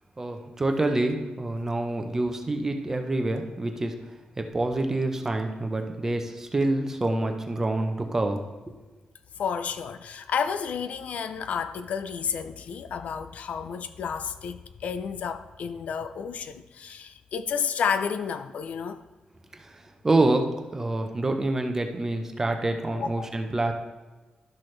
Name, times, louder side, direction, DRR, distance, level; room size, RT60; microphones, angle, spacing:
voice 1, 0.2-3.9 4.4-8.4 19.5-23.7, right 2 dB, 20° right, 0.7 m, -27 dB
voice 2, 9.4-19.0 22.9-23.3, left 6 dB, 70° left, 0.4 m, -31 dB
12.0 x 6.0 x 3.2 m
wide cardioid pair, 170°, 3 cm